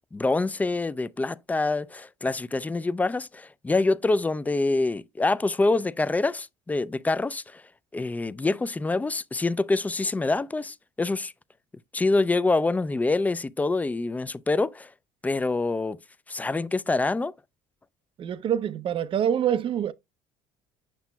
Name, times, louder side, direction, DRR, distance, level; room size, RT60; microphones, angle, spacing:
voice 1, 0.0-7.6 7.9-11.3 11.9-14.9 15.2-16.0 16.3-17.3, left 3 dB, 10° left, 0.3 m, -26 dB
voice 2, 18.2-19.9, right 9 dB, 45° right, 0.5 m, -25 dB
7.5 x 5.8 x 2.2 m
supercardioid pair, 95°, 12 cm